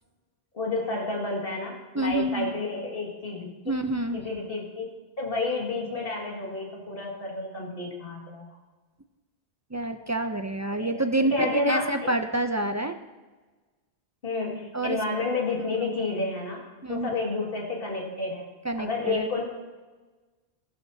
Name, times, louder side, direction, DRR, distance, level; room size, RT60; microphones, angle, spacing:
voice 1, 0.5-3.8 4.1-4.9 5.2-8.5 10.8-12.1 14.2-16.6 16.9-18.4 18.8-19.4, left 3 dB, 55° left, -2 dB, 2.3 m, -30 dB
voice 2, 1.9-2.5 3.7-4.2 9.7-12.9 14.7-15.0 16.8-17.1 18.6-19.3, right 1 dB, 30° right, 7 dB, 0.3 m, -27 dB
13.5 x 12.5 x 2.8 m, 1.3 s
omnidirectional pair, 1.1 m